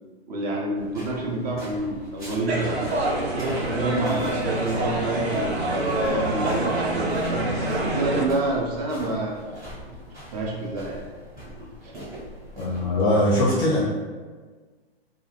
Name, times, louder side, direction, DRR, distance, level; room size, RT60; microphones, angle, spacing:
voice 1, 0.3-2.8 3.3-6.7 6.9-9.4 10.3-11.0 11.8-11.9, right 2 dB, 40° right, -2 dB, 0.5 m, -28 dB
sound 1, 0.8-13.0, equal, 10° right, 0.9 m, -42 dB
sound 2, 2.5-8.2, right 1 dB, 85° right, 0.6 m, -26 dB
voice 2, 12.6-13.8, left 1 dB, 15° left, -6 dB, 0.4 m, -21 dB
2.4 x 2.0 x 3.2 m, 1.4 s
figure-of-eight pair, 115°, 31 cm